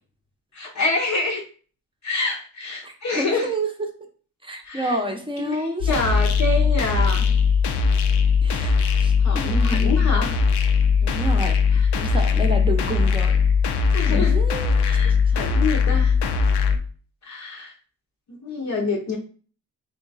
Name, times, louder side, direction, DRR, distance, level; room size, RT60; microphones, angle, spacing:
voice 1, 0.5-1.4 2.0-3.5 4.7-5.0 5.9-7.3 8.6-10.3 11.7-12.2 13.9-14.4 14.8-16.1 17.3-17.7 18.3-19.2, left 3 dB, 45° left, -2 dB, 0.7 m, -27 dB
voice 2, 2.8-3.9 4.4-5.9 8.4-9.9 11.0-11.6 12.0-13.3 14.1-15.2, right 1 dB, 15° right, 3 dB, 0.7 m, -29 dB
sound 1, 5.8-16.8, left 5 dB, 80° left, 0.6 m, -20 dB
3.6 x 2.3 x 3.9 m, 0.40 s
wide cardioid pair, 110°, 40 cm